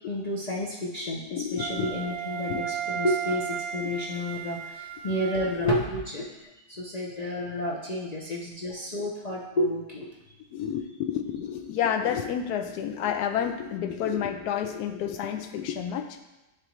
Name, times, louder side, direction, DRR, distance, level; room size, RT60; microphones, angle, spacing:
voice 1, 0.1-6.3 6.7-10.1, left 1 dB, 45° left, -4 dB, 0.5 m, -30 dB
voice 2, 1.3-1.9 2.5-2.6 3.8-3.9 10.5-16.1, left 8 dB, 90° left, 7 dB, 1.1 m, -30 dB
Wind instrument woodwind instrument, 1.6-5.9, right 9 dB, 90° right, 1.1 m, -35 dB
9.8 x 3.4 x 3.1 m, 1.0 s
omnidirectional pair, 1.6 m